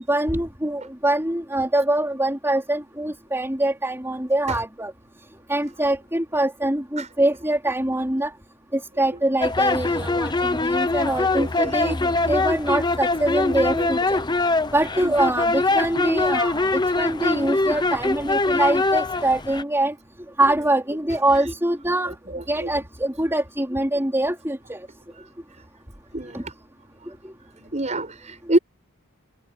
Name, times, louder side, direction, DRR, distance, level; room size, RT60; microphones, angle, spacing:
voice 1, 0.1-4.9 5.5-8.3 8.7-14.2 14.7-19.9 20.4-22.1 22.5-24.9 26.3-26.4 27.1-27.3, right 1 dB, 10° right, 4.1 m, -24 dB
sound 1, 9.4-19.6, left 3 dB, 20° left, 0.8 m, -23 dB
voice 2, 11.3-12.2 13.7-13.9 15.0-15.2 22.3-22.7 26.1-26.5 27.6-28.6, right 1 dB, 30° right, 7.9 m, -27 dB
head